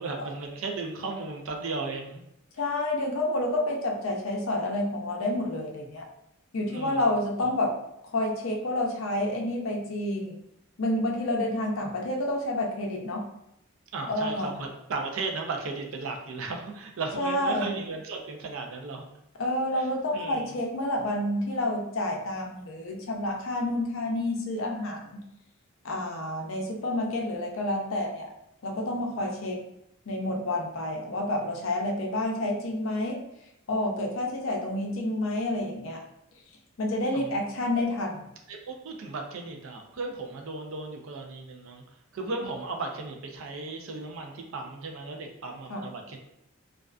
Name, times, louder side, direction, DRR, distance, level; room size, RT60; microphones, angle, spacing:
voice 1, 0.0-2.2 6.6-7.1 13.9-19.1 19.7-19.9 20.1-20.6 37.1-37.3 38.5-41.8 42.1-46.2, right 3 dB, 70° right, 3 dB, 0.4 m, -35 dB
voice 2, 2.6-6.0 6.5-7.7 8.1-10.4 10.8-13.3 14.1-14.6 17.2-17.7 19.4-25.2 25.8-28.3 28.6-29.6 30.1-33.2 33.7-36.0 36.8-38.2 45.7-45.8, left 1 dB, 65° left, 1 dB, 0.5 m, -29 dB
2.4 x 2.2 x 2.4 m, 0.81 s
head